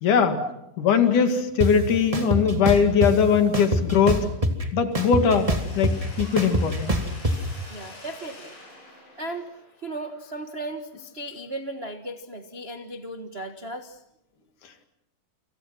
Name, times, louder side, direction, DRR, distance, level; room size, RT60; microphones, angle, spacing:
voice 1, 0.0-0.4 0.8-4.3 4.7-5.5 5.8-6.9, left 6 dB, 65° left, 7 dB, 3.6 m, -20 dB
sound 1, 1.6-1.7 2.1-3.1 3.5-4.6 4.9-7.3, right 1 dB, 10° right, 1.9 m, -23 dB
Mechanisms, 4.9-10.8, left 2 dB, 90° left, 9.8 m, -46 dB
voice 2, 7.7-8.5 9.2-14.0, right 1 dB, 60° right, 5 dB, 0.6 m, -36 dB
29.0 x 27.5 x 6.1 m, 0.83 s
omnidirectional pair, 4.0 m